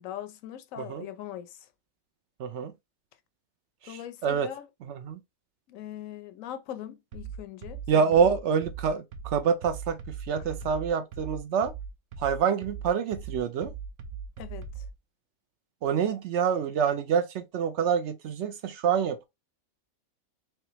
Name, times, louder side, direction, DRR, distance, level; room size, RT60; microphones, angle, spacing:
voice 1, 0.0-1.7 3.8-4.7 5.7-8.2 14.4-14.9, left 11 dB, 75° left, 0.9 m, -41 dB
voice 2, 2.4-2.7 3.8-4.5 4.9-5.2 7.9-10.0 10.3-11.7 12.2-13.7 15.8-19.3, right 7 dB, 65° right, 0.7 m, -26 dB
sound 1, 7.1-15.0, right 6 dB, 85° right, 1.1 m, -39 dB
3.4 x 3.1 x 2.9 m
omnidirectional pair, 1.5 m